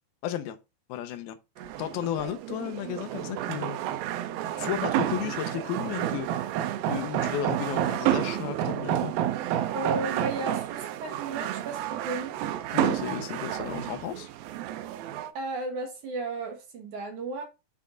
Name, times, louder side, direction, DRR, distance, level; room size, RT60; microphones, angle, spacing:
voice 1, 0.2-0.6 0.9-1.4 1.8-3.8 4.6-6.3 6.9-9.1 12.7-14.3, left 10 dB, 80° left, 2.5 m, -33 dB
sound 1, 1.6-15.3, right 12 dB, 80° right, 2.4 m, -30 dB
voice 2, 9.7-12.4 15.3-17.4, right 2 dB, 60° right, 2.5 m, -34 dB
8.3 x 5.6 x 3.8 m
omnidirectional pair, 4.5 m